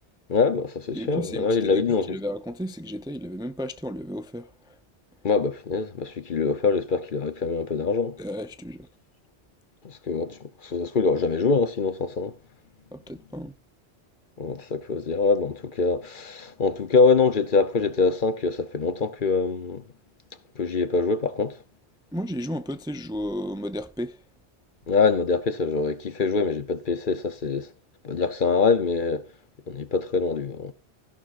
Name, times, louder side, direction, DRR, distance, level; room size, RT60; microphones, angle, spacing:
voice 1, 0.3-2.2 5.2-8.2 9.8-12.3 14.4-19.8 20.6-21.6 24.9-27.7 28.0-29.2 29.7-30.7, left 4 dB, 50° left, 1.0 m, -24 dB
voice 2, 0.9-4.8 8.2-8.9 12.9-13.5 22.1-24.2, equal, 5° right, 0.5 m, -33 dB
15.0 x 11.5 x 2.6 m
omnidirectional pair, 1.1 m